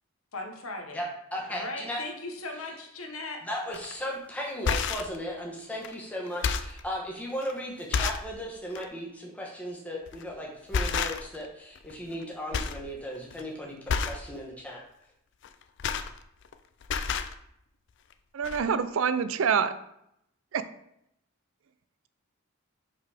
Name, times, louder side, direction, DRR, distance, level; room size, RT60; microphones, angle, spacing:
voice 1, 0.3-1.0 1.5-3.4, left 2 dB, 75° left, 3 dB, 1.1 m, -38 dB
voice 2, 0.9-2.0 3.4-14.8, equal, 5° left, -2 dB, 1.1 m, -36 dB
sound 1, 3.7-3.9 4.5-5.2 5.8-5.9 6.3-6.8 7.4-7.5 7.9-8.3 8.7-8.9 10.1-10.3 10.7-11.5 11.8-12.2 12.5-12.8 13.2-13.4 13.9-14.3 15.4-16.5 16.8-17.3 18.1-18.2 18.4-18.6, left 5 dB, 55° left, 0.4 m, -30 dB
voice 3, 18.3-19.7 20.5-20.6, right 6 dB, 65° right, 13 dB, 0.4 m, -26 dB
5.4 x 4.0 x 4.9 m, 0.76 s
head